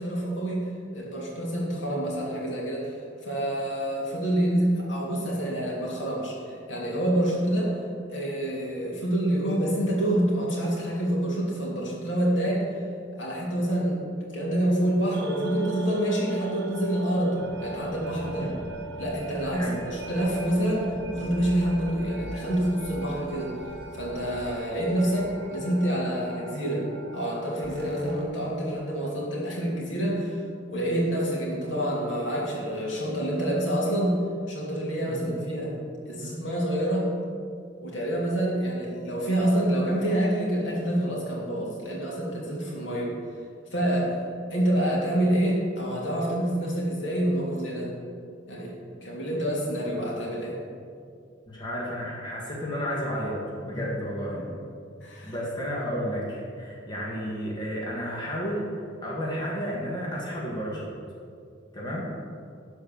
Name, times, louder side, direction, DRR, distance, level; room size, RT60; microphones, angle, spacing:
voice 1, 0.0-3.0 3.2-7.8 8.1-12.6 13.1-14.0 14.3-18.5 19.0-23.6 23.9-26.9 27.1-30.4 30.7-34.2 34.5-35.8 36.0-37.1 37.8-43.1 43.7-44.2 44.5-47.9 48.5-48.7 49.0-50.6 53.6-53.9 54.3-54.5 55.0-55.3, right 1 dB, 75° left, -4 dB, 2.7 m, -27 dB
sound 1, 15.1-28.2, right 2 dB, 60° right, 1.3 m, -39 dB
voice 2, 18.2-18.6 19.5-19.8 35.1-35.4 51.5-54.4 55.2-58.7 59.0-60.9 61.7-62.1, equal, 25° left, -5 dB, 1.7 m, -32 dB
12.0 x 4.5 x 7.1 m, 2.3 s
head